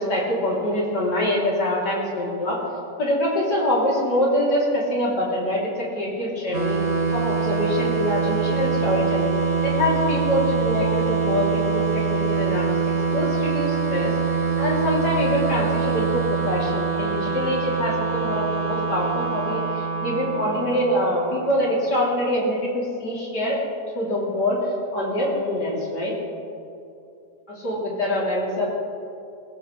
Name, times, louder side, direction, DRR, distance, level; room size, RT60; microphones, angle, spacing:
voice 1, 0.0-2.6 3.0-6.8 7.1-9.3 9.6-12.6 13.1-14.1 14.6-23.6 23.9-24.6 24.9-26.1 27.6-28.7, left 1 dB, 80° left, -5 dB, 4.0 m, -24 dB
sound 1, 6.5-21.9, right 5 dB, 60° right, 2.1 m, -24 dB
21.5 x 15.0 x 3.3 m, 2.7 s
omnidirectional pair, 1.8 m